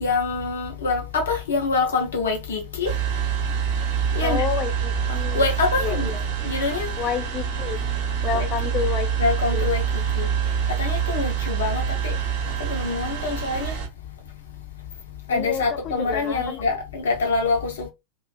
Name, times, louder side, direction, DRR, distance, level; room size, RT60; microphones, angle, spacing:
voice 1, 0.0-2.9 4.1-4.4 5.3-6.1 6.4-6.9 8.4-8.5 9.2-9.8 10.1-10.3 10.8-12.1 12.7-13.7 15.3-17.9, left 4 dB, 65° left, 0.8 m, -25 dB
sound 1, 2.8-13.9, right 8 dB, 45° right, 0.7 m, -26 dB
voice 2, 4.2-5.5 5.8-6.2 7.0-7.8 8.2-9.7 15.3-16.6, left 8 dB, 30° left, 0.4 m, -29 dB
2.5 x 2.2 x 2.3 m
figure-of-eight pair, 90°, 0 cm